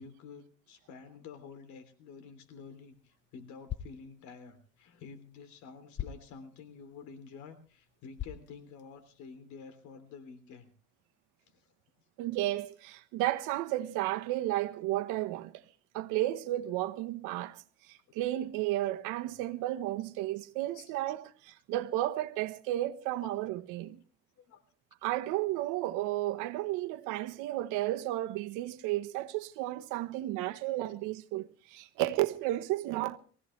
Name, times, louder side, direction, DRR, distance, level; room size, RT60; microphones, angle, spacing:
voice 1, 0.0-10.7 11.5-11.7 20.7-20.9 23.2-23.4 24.4-24.6 30.4-30.5, left 5 dB, 70° left, 3.3 m, -50 dB
sound 1, 2.4-9.4, left 11 dB, 40° left, 0.9 m, -47 dB
voice 2, 12.2-15.6 15.9-24.0 25.0-33.2, right 15 dB, 85° right, 1.2 m, -33 dB
23.0 x 16.0 x 3.3 m
cardioid pair, 130°, 30 cm